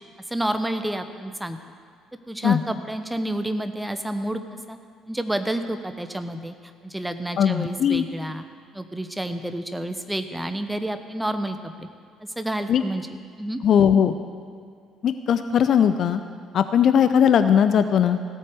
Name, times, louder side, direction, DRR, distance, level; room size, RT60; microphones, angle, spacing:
voice 1, 0.3-1.6 2.3-4.4 4.7-4.8 5.1-6.5 6.8-8.4 8.7-11.9 12.4-13.1 13.4-13.6, right 1 dB, 5° right, 8 dB, 1.0 m, -29 dB
voice 2, 7.4-8.0 12.7-12.8 13.6-14.2 15.0-16.2 16.5-18.2, left 8 dB, 50° left, 11 dB, 0.5 m, -19 dB
16.0 x 8.6 x 6.7 m, 2.1 s
figure-of-eight pair, 50°, 0 cm